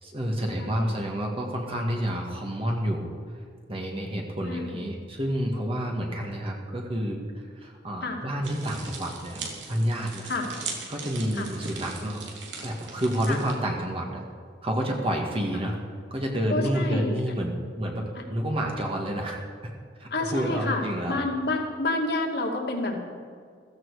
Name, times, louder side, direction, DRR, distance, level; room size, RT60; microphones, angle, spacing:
voice 1, 0.0-3.1 3.7-7.3 7.5-10.3 10.9-12.2 12.6-14.2 14.6-15.8 16.1-19.7 20.0-21.2, equal, 30° right, 0 dB, 1.8 m, -29 dB
voice 2, 0.6-1.0 4.5-4.9 8.0-8.2 10.3-10.5 11.3-11.5 13.3-13.4 15.5-15.6 16.5-17.4 18.2-18.3 20.1-23.0, left 2 dB, 60° left, 1 dB, 2.5 m, -29 dB
sound 1, 8.4-13.5, right 4 dB, 90° right, 3.0 m, -39 dB
15.0 x 15.0 x 4.9 m, 2.1 s
head